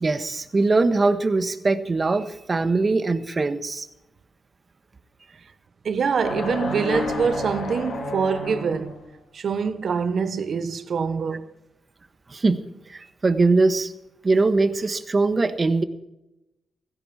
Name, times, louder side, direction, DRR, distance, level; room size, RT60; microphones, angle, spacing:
voice 1, 0.0-3.9 12.3-12.6 12.9-13.9 14.2-15.8, right 3 dB, 35° right, 1.4 m, -21 dB
voice 2, 5.8-9.0 9.3-11.5, right 6 dB, 65° right, 1.1 m, -25 dB
sound 1, 6.2-9.1, left 2 dB, 80° left, 3.9 m, -30 dB
17.0 x 14.5 x 4.3 m
cardioid pair, 75°, 0 cm